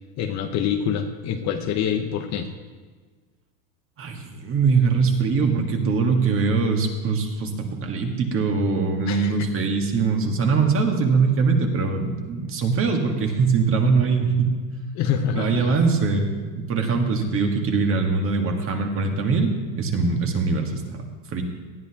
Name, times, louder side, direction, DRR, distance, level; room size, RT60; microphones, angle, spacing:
voice 1, 0.2-2.5 9.1-9.3 14.9-15.8, left 8 dB, 35° left, 6 dB, 0.9 m, -26 dB
voice 2, 4.0-14.5 15.3-16.3 16.6-21.0 21.3-21.4, right 4 dB, 25° right, 3 dB, 1.6 m, -22 dB
19.0 x 12.0 x 2.9 m, 1.5 s
supercardioid pair, 135°, 47 cm